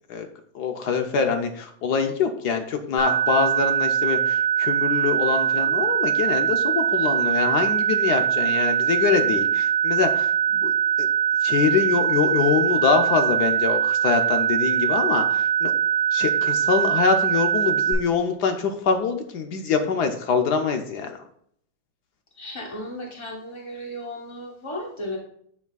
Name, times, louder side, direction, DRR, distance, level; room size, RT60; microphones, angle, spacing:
voice 1, 0.5-10.3 10.6-11.1 11.4-15.7 16.1-21.2, left 6 dB, 65° left, 5 dB, 1.1 m, -24 dB
sound 1, 3.0-17.9, right 8 dB, 15° left, 2.9 m, -22 dB
voice 2, 22.4-25.2, left 1 dB, 35° left, -1 dB, 0.4 m, -35 dB
8.0 x 7.3 x 2.3 m, 0.65 s
omnidirectional pair, 2.2 m